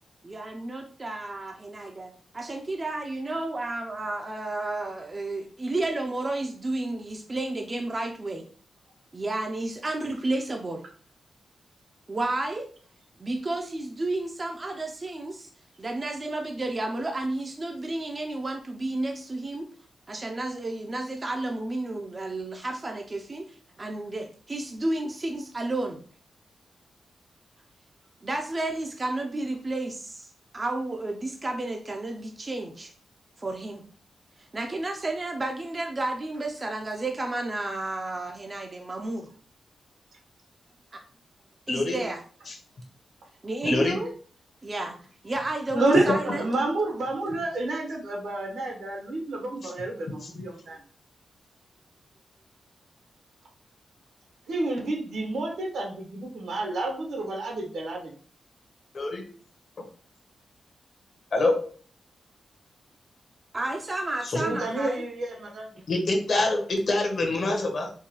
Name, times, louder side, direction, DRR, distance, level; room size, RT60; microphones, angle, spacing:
voice 1, 0.2-8.5 9.1-10.8 12.1-12.7 13.2-15.5 15.8-19.7 20.1-26.0 28.2-30.3 30.5-32.9 33.4-33.8 34.4-39.3 40.9-41.0 41.7-42.2 43.4-44.1 44.6-45.0 45.2-46.5 63.5-65.1, right 2 dB, 25° right, 2 dB, 0.4 m, -31 dB
voice 2, 41.7-42.0 43.6-44.0 46.1-46.2 49.6-49.7 50.2-50.3 58.9-59.2 61.3-61.7 64.3-64.4 65.9-67.9, left 2 dB, 50° left, 3 dB, 0.8 m, -25 dB
voice 3, 45.7-50.8 54.5-58.1 64.4-65.8, right 2 dB, 80° right, 1 dB, 1.0 m, -29 dB
4.5 x 2.2 x 2.9 m, 0.43 s
wide cardioid pair, 160°, 0 cm